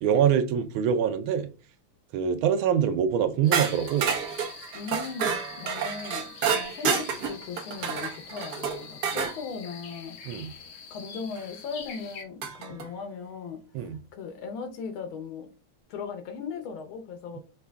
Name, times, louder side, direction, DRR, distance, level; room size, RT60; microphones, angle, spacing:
voice 1, 0.0-1.5 2.1-4.1 10.3-10.5 13.7-14.0, right 8 dB, 85° right, 1.5 m, -24 dB
sound 1, 3.4-12.2, left 6 dB, 65° left, 0.8 m, -45 dB
sound 2, 3.5-9.4 11.4-11.5 12.4-12.9, right 6 dB, 65° right, 1.2 m, -29 dB
voice 2, 4.7-10.6 10.9-13.6 14.1-15.5 15.9-17.4, left 5 dB, 85° left, 1.7 m, -38 dB
5.7 x 2.3 x 3.5 m
omnidirectional pair, 2.2 m